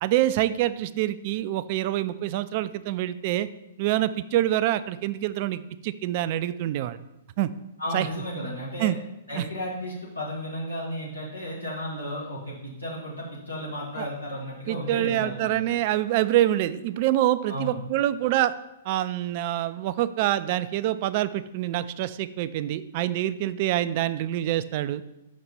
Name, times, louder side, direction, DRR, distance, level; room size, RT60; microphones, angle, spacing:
voice 1, 0.0-3.5 3.8-7.0 7.4-7.5 7.9-8.1 8.8-9.0 9.4-9.5 14.0-14.1 14.7-18.5 18.9-25.0, right 13 dB, 45° right, 14 dB, 0.3 m, -26 dB
voice 2, 7.8-8.9 9.3-15.6 17.5-17.8, equal, 90° left, -6 dB, 1.7 m, -33 dB
5.9 x 4.2 x 5.2 m, 0.91 s
figure-of-eight pair, 115°, 0 cm